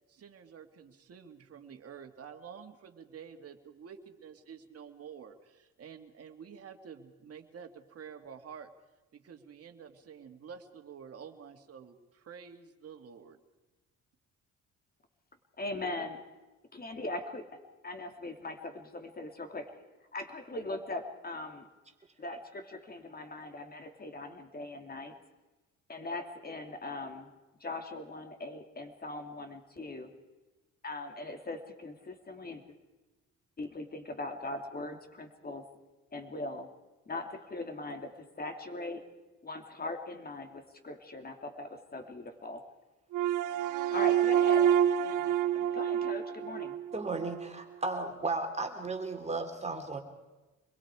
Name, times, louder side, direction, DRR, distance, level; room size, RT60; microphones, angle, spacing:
voice 1, 0.1-8.7 9.1-13.4, right 7 dB, 50° right, 5 dB, 2.2 m, -49 dB
voice 2, 15.6-16.2 16.7-19.8 20.1-21.7 22.2-25.1 25.9-27.3 27.6-30.1 30.8-32.6 33.6-35.7 36.1-36.7 37.1-39.0 39.4-42.6 43.9-46.8, left 2 dB, 30° left, 6 dB, 2.9 m, -40 dB
sound 1, 43.1-47.4, right 10 dB, 85° right, 0.8 m, -28 dB
voice 3, 46.9-50.0, right 3 dB, 20° right, 5 dB, 3.0 m, -34 dB
26.0 x 21.5 x 4.9 m, 1.1 s
cardioid pair, 90°, 30 cm